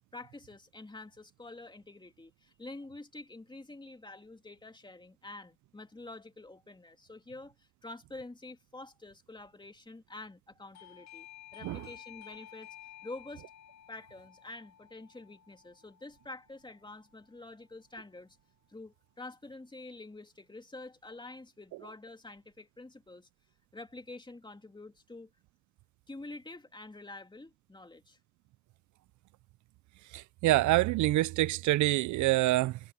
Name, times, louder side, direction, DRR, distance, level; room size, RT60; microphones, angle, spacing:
voice 1, 0.1-11.3 11.5-12.8 13.0-13.4 13.9-18.4 18.7-23.3 23.7-25.3 26.1-28.2, left 2 dB, 15° left, 2.7 m, -47 dB
Doorbell, 10.7-17.2, left 11 dB, 65° left, 0.8 m, -53 dB
voice 2, 30.1-32.8, right 17 dB, 75° right, 0.4 m, -26 dB
cardioid pair, 90°, 30 cm